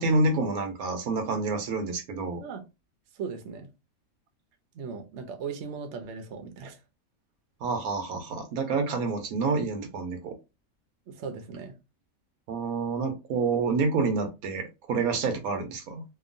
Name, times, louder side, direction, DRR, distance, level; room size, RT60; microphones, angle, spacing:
voice 1, 0.0-2.4 7.6-10.3 12.5-16.0, right 3 dB, 85° right, 1.1 m, -28 dB
voice 2, 3.1-3.7 4.7-6.8 11.1-11.7, right 5 dB, 60° right, 0.8 m, -38 dB
2.9 x 2.2 x 2.5 m
omnidirectional pair, 1.5 m